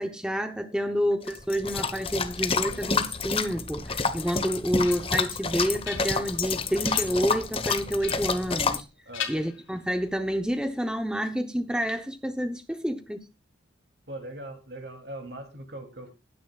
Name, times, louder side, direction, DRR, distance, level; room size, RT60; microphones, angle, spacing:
voice 1, 0.0-8.9 9.3-13.2, equal, 5° right, 0.8 m, -29 dB
sound 1, 1.3-8.8, left 4 dB, 30° left, 1.1 m, -29 dB
sound 2, 4.6-5.3 5.7-6.4 6.8-7.3 8.0-8.9 9.1-10.1, left 8 dB, 85° left, 2.6 m, -40 dB
voice 2, 9.1-9.4 14.1-16.2, right 1 dB, 60° right, 2.8 m, -40 dB
20.0 x 10.0 x 2.4 m
head